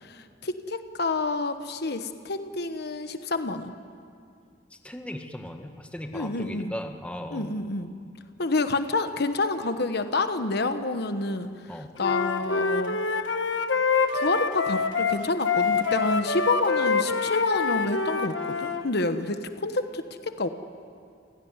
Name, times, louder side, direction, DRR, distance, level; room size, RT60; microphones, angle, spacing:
voice 1, 0.0-3.7 6.1-6.7 7.3-7.9 8.4-13.0 14.1-20.5, left 3 dB, 60° left, 9 dB, 1.1 m, -28 dB
voice 2, 4.8-7.5 11.7-11.9, equal, 5° left, 4 dB, 1.5 m, -37 dB
Wind instrument woodwind instrument, 12.0-18.8, left 4 dB, 80° left, 1.4 m, -26 dB
29.0 x 16.5 x 9.6 m, 2.3 s
head